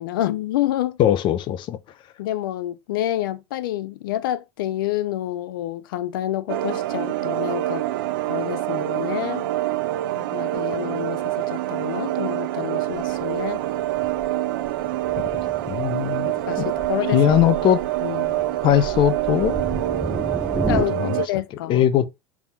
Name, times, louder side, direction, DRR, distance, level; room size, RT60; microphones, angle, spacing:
voice 1, 0.0-1.0 2.2-7.8 8.3-9.5 10.1-13.6 16.3-17.4 18.0-18.4 20.7-21.8, left 13 dB, 85° left, 0.8 m, -28 dB
voice 2, 1.0-1.8 15.2-15.3 15.7-16.3 16.6-16.7 17.1-17.8 18.6-19.6 20.9-21.2 21.7-22.1, left 11 dB, 45° left, 0.9 m, -20 dB
sound 1, 6.5-21.3, right 15 dB, 85° right, 0.5 m, -26 dB
Thunder, 12.9-20.8, right 2 dB, 5° right, 0.8 m, -32 dB
4.9 x 3.5 x 5.6 m
supercardioid pair, 110°, 11 cm